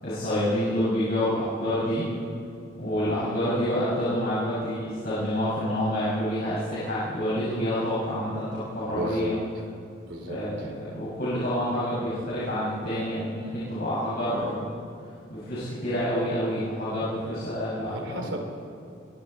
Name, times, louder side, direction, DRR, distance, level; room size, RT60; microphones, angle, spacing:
voice 1, 0.0-2.0 2.8-9.3 10.3-14.8 15.3-18.0, equal, 50° left, -11 dB, 6.6 m, -28 dB
voice 2, 8.9-9.6 10.1-10.7 17.8-18.4, equal, 70° right, 3 dB, 3.4 m, -35 dB
26.0 x 22.5 x 4.5 m, 2.6 s
head